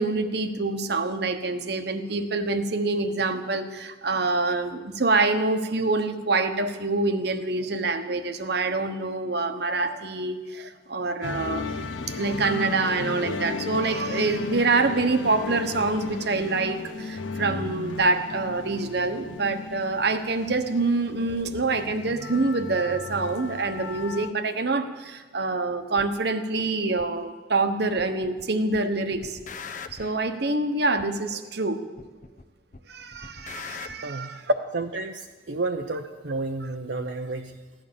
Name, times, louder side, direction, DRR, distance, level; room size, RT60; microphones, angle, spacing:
voice 1, 0.0-29.4 29.9-31.8 32.9-34.3, right 3 dB, 60° right, 8 dB, 1.2 m, -26 dB
sound 1, 11.2-24.3, left 4 dB, 85° left, 0.7 m, -35 dB
sound 2, 26.0-26.1 27.0-27.1 28.0-28.4 28.7-30.2 31.0-31.1 32.0-32.4 32.7-33.9, left 5 dB, 40° left, 0.8 m, -40 dB
voice 2, 34.0-34.4 34.7-37.6, right 3 dB, 75° right, 3 dB, 0.8 m, -31 dB
16.0 x 11.5 x 7.0 m, 1.3 s
head